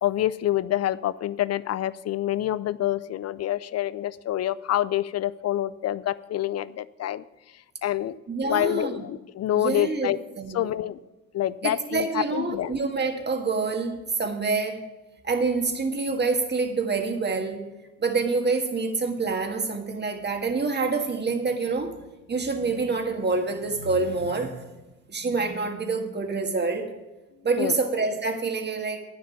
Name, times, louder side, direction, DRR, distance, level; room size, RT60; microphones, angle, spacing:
voice 1, 0.0-7.2 7.8-8.1 8.4-10.2 10.5-11.0 11.3-12.7 27.6-27.8, left 12 dB, 50° left, 17 dB, 0.5 m, -27 dB
voice 2, 8.3-9.0 9.5-10.7 11.6-14.9 15.2-17.7 18.0-21.9 22.3-24.6 25.1-26.9 27.4-29.0, right 4 dB, 30° right, 4 dB, 1.6 m, -27 dB
9.5 x 7.4 x 5.8 m, 1.1 s
supercardioid pair, 80°, 34 cm